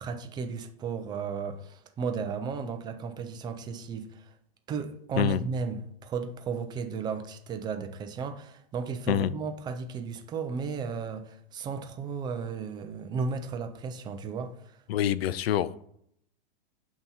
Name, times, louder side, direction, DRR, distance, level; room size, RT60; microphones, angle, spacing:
voice 1, 0.0-4.3 4.7-14.8, right 5 dB, 15° right, 0.4 m, -34 dB
voice 2, 14.9-15.8, left 11 dB, 85° left, 0.5 m, -26 dB
8.0 x 2.9 x 5.4 m
supercardioid pair, 140°, 30 cm